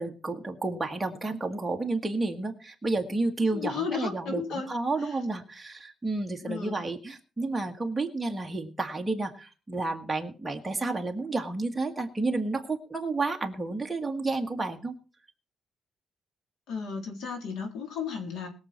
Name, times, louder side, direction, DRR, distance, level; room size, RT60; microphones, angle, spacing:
voice 1, 0.0-14.9, right 3 dB, 10° right, 2 dB, 1.7 m, -31 dB
voice 2, 3.5-4.7 5.0-5.1 6.5-6.8 16.7-18.5, left 6 dB, 85° left, 3 dB, 3.6 m, -34 dB
21.0 x 7.1 x 4.4 m, 0.35 s
cardioid pair, 170°, 0 cm